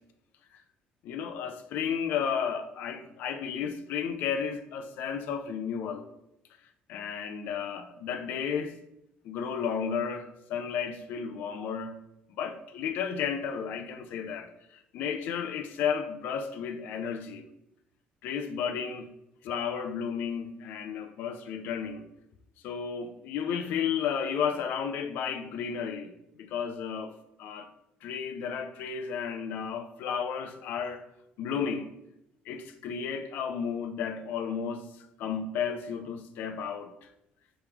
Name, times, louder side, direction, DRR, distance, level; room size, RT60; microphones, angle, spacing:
voice 1, 1.0-6.0 6.9-8.7 9.2-12.0 12.3-14.5 14.9-17.4 18.2-19.1 19.4-22.1 22.6-26.1 26.4-27.7 28.0-31.0 31.4-31.9 32.5-36.9, left 7 dB, 65° left, 0.3 m, -33 dB
3.5 x 3.0 x 4.6 m
cardioid pair, 180°, 3 cm